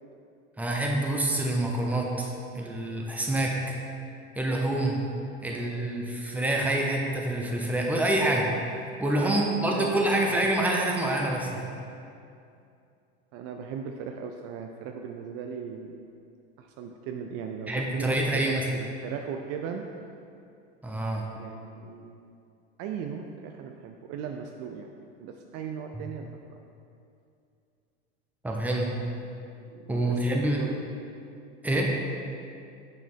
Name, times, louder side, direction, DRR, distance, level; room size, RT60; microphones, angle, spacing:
voice 1, 0.6-3.8 4.4-5.0 5.4-8.5 9.0-11.7 17.7-18.6 20.8-21.2 25.9-26.0 28.4-28.9 29.9-30.6 31.6-31.9, right 1 dB, 5° right, -1 dB, 0.7 m, -27 dB
voice 2, 5.5-6.1 6.5-6.7 9.2-10.0 10.3-10.4 13.3-16.2 16.6-19.8 21.3-22.2 22.8-24.9 25.2-26.3 29.6-31.1, right 7 dB, 45° right, 4 dB, 0.4 m, -38 dB
6.1 x 4.5 x 3.5 m, 2.5 s
hypercardioid pair, 95°, 34 cm